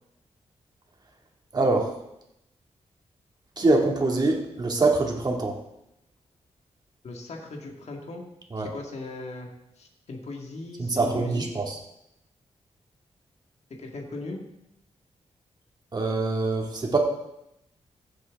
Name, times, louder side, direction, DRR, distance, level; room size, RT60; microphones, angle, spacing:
voice 1, 1.5-1.9 3.6-5.6 8.5-8.7 10.8-11.8 15.9-17.0, right 3 dB, 35° right, 1 dB, 2.1 m, -24 dB
voice 2, 7.0-8.2 8.7-9.5 9.8-11.5 13.7-14.4, left 2 dB, 65° left, 1 dB, 1.9 m, -38 dB
15.5 x 7.8 x 3.6 m, 0.83 s
wide cardioid pair, 100°, 12 cm